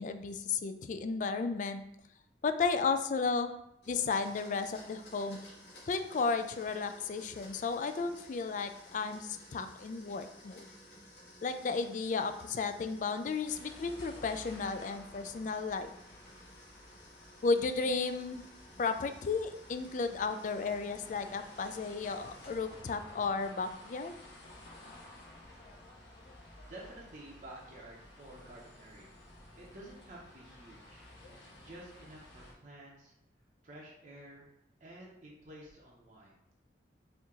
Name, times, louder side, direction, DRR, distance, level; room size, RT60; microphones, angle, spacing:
voice 1, 0.0-1.8 2.4-3.5 3.9-5.4 5.9-10.6 11.4-15.9 17.4-18.4 18.8-24.2, left 4 dB, 45° left, 9 dB, 0.3 m, -33 dB
Domestic sounds home sounds, 3.8-23.0, left 1 dB, 60° left, 1.5 m, -56 dB
sound 1, 13.4-32.5, left 1 dB, 80° left, 1.3 m, -54 dB
voice 2, 26.3-29.1 29.6-33.1 33.6-34.5 34.8-36.3, right 1 dB, 45° right, -4 dB, 0.7 m, -51 dB
4.4 x 2.8 x 3.7 m, 0.80 s
head